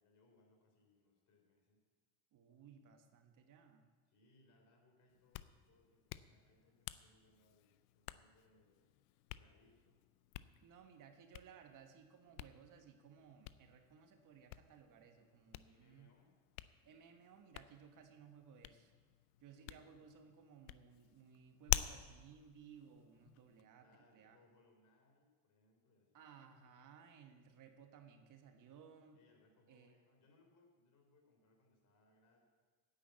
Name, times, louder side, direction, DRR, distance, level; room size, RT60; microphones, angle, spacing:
voice 1, 0.0-1.8 4.1-8.9 9.3-10.0 15.5-16.3 19.6-20.1 23.8-26.2 29.1-32.5, left 2 dB, 45° left, 3 dB, 3.8 m, -72 dB
voice 2, 2.3-3.9 10.6-16.1 16.8-18.9 19.4-23.9 24.1-24.4 26.1-29.2 29.7-30.0, right 7 dB, 50° right, 6 dB, 1.5 m, -60 dB
Hands, 5.1-23.6, left 16 dB, 75° left, 0.6 m, -48 dB
9.9 x 8.9 x 8.2 m, 1.4 s
supercardioid pair, 100°, 41 cm